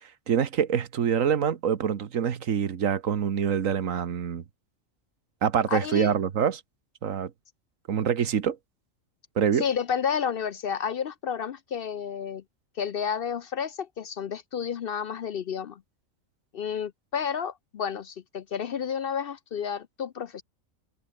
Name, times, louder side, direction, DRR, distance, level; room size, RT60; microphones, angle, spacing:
voice 1, 0.3-4.4 5.4-6.6 7.0-7.3 7.9-8.6 9.4-9.6, right 8 dB, 80° right, 1.6 m, -25 dB
voice 2, 5.7-6.1 9.6-12.4 12.8-15.8 16.5-20.4, left 7 dB, 55° left, 0.7 m, -31 dB
omnidirectional pair, 1.3 m